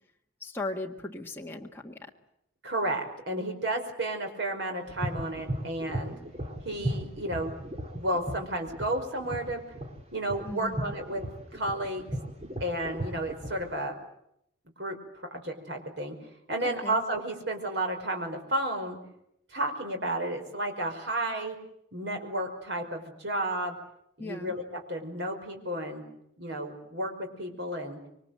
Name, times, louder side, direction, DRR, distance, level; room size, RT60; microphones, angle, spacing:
voice 1, 0.4-2.1 10.4-10.9 16.6-17.0 24.2-24.6, left 2 dB, 10° left, 0 dB, 1.7 m, -38 dB
voice 2, 2.6-6.2 6.6-7.6 7.9-9.6 10.1-11.3 11.5-12.1 12.6-14.0 14.8-16.2 16.5-19.0 19.5-21.6 21.9-23.8 24.2-26.0 26.4-28.0, right 1 dB, 60° right, 4 dB, 5.4 m, -32 dB
sound 1, 4.9-13.9, right 1 dB, 30° right, 2.7 m, -37 dB
26.5 x 23.5 x 7.8 m, 0.76 s
head